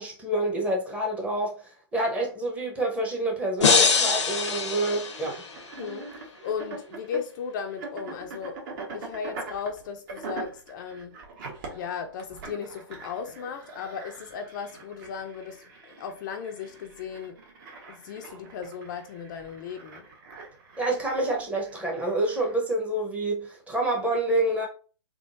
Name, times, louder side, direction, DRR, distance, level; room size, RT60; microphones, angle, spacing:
voice 1, 0.0-5.4 20.8-24.7, right 1 dB, 10° right, 0.9 m, -28 dB
sound 1, 3.6-5.7, left 5 dB, 90° left, 0.8 m, -23 dB
sound 2, 3.6-22.6, right 3 dB, 45° right, 1.3 m, -43 dB
voice 2, 5.8-8.6 8.9-11.2 11.7-17.4 17.9-20.0, left 7 dB, 45° left, 0.5 m, -36 dB
3.6 x 3.2 x 2.6 m
hypercardioid pair, 140°, 15 cm